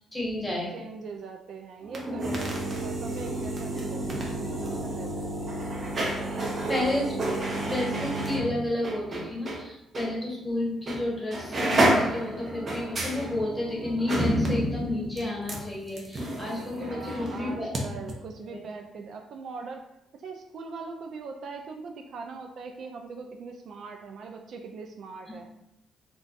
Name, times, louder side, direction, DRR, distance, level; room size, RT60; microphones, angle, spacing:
voice 1, 0.0-0.8 6.7-7.1 7.6-18.1 18.5-18.6 25.3-25.4, left 1 dB, 10° left, -5 dB, 1.3 m, -31 dB
voice 2, 0.7-5.4 6.4-7.7 16.8-19.9 20.1-25.5, right 4 dB, 65° right, 4 dB, 0.3 m, -41 dB
sound 1, 1.8-9.6 9.9-10.1 10.9-11.0 11.3-17.8 18.1-18.2, right 1 dB, 40° right, 0.7 m, -30 dB
2.5 x 2.2 x 3.8 m, 0.83 s
cardioid pair, 90°, 0 cm